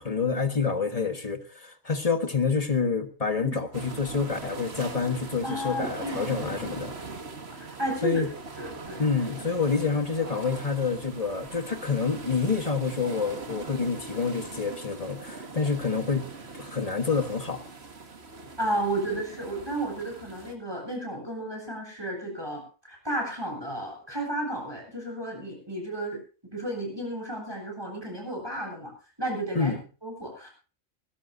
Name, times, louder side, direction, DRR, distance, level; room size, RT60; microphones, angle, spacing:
voice 1, 0.0-6.9 8.0-8.3 9.0-16.3 16.5-17.6 29.5-29.8, left 5 dB, 30° left, 1.4 m, -28 dB
sound 1, 3.7-20.5, right 3 dB, 55° right, 1.9 m, -41 dB
voice 2, 5.4-6.7 7.5-8.2 8.6-9.0 18.6-26.2 26.5-28.9 29.2-29.7 30.0-30.5, right 1 dB, 20° right, 8.1 m, -33 dB
21.0 x 17.5 x 2.7 m
omnidirectional pair, 1.4 m